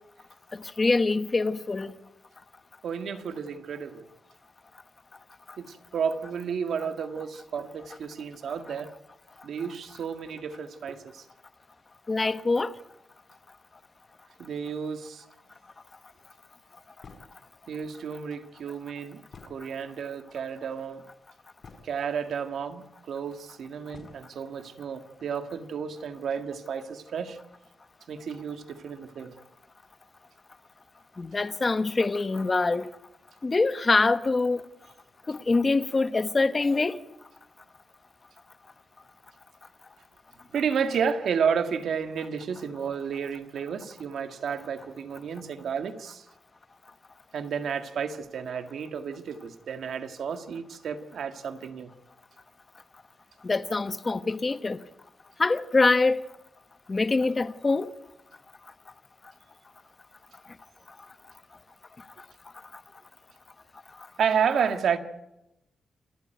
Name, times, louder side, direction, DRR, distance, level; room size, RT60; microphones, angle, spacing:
voice 1, 0.5-1.9 12.1-12.7 31.2-32.9 33.4-34.6 35.3-37.0 53.4-54.8 55.4-56.2 56.9-57.9, left 3 dB, 25° left, 1.0 m, -24 dB
voice 2, 2.8-4.0 5.6-8.9 9.4-11.2 14.4-15.2 17.7-19.2 19.5-21.0 21.8-27.4 28.1-29.3 40.5-46.2 47.3-51.9 64.2-65.0, right 7 dB, 70° right, 1.9 m, -31 dB
sound 1, 17.0-17.5 19.3-20.0 20.9-21.0 21.3-22.1 23.1-23.2 23.9-24.3, left 4 dB, 45° left, 5.1 m, -50 dB
28.5 x 13.5 x 9.2 m
wide cardioid pair, 145°, 0 cm